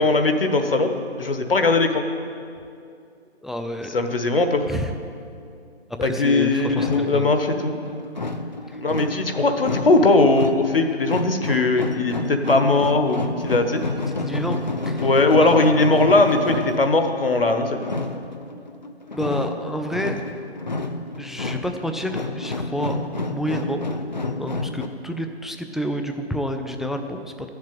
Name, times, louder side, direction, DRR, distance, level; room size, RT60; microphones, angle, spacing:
voice 1, 0.0-2.0 3.9-4.6 6.0-7.8 8.8-13.8 15.0-17.8, left 2 dB, 60° left, 6 dB, 1.2 m, -19 dB
voice 2, 3.4-4.2 4.7-4.9 5.9-7.3 8.7-8.8 14.1-14.6 14.9-15.1 15.4-15.5 19.1-20.2 21.2-23.8 24.4-27.3, equal, ahead, 6 dB, 0.3 m, -29 dB
sound 1, 6.2-24.9, left 2 dB, 45° left, 0.6 m, -30 dB
11.5 x 7.3 x 9.0 m, 2.4 s
hypercardioid pair, 180°, 33 cm